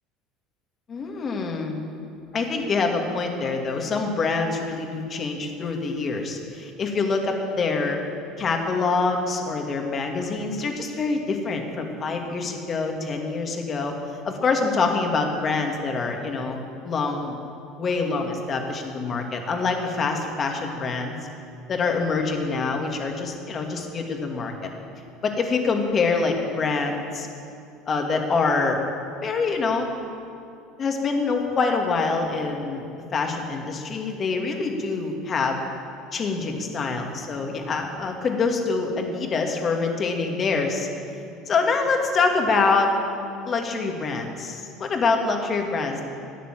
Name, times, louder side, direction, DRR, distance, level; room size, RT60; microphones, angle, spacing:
voice 1, 0.9-1.8 2.3-8.0 8.4-14.0 14.2-17.4 17.8-21.1 21.7-24.7 25.2-27.3 27.9-28.8 29.2-29.9 30.8-32.8 33.1-35.6 36.1-40.9 41.5-42.9 43.4-46.1, left 4 dB, 35° left, 3 dB, 2.3 m, -25 dB
15.5 x 10.0 x 7.7 m, 2.6 s
hypercardioid pair, 70°, 0 cm